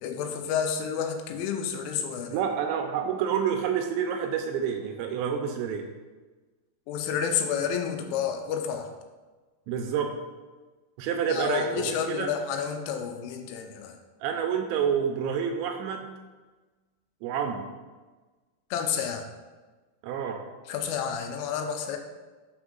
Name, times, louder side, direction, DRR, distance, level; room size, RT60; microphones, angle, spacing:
voice 1, 0.0-2.4 6.9-8.9 11.3-14.0 18.7-19.3 20.7-22.0, left 7 dB, 90° left, 5 dB, 3.3 m, -30 dB
voice 2, 2.3-5.9 9.7-10.1 11.0-12.3 14.2-16.1 17.2-17.6 20.0-20.4, right 7 dB, 80° right, 4 dB, 2.7 m, -28 dB
7.1 x 6.1 x 3.8 m, 1.3 s
omnidirectional pair, 5.5 m